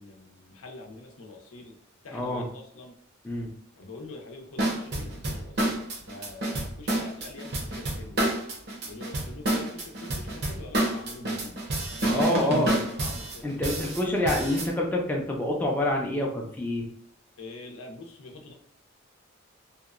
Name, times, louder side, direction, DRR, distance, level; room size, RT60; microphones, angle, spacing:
voice 1, 0.0-1.7 2.0-2.9 3.8-8.2 8.9-11.6 12.3-12.5 13.0-13.8 17.4-18.5, left 3 dB, 90° left, 2 dB, 0.6 m, -44 dB
voice 2, 2.1-2.5 3.2-3.5 12.1-12.8 13.4-16.8, left 1 dB, 10° left, -1 dB, 0.4 m, -27 dB
sound 1, 4.6-14.7, right 1 dB, 50° right, 0.6 m, -29 dB
2.8 x 2.1 x 2.4 m, 0.66 s
head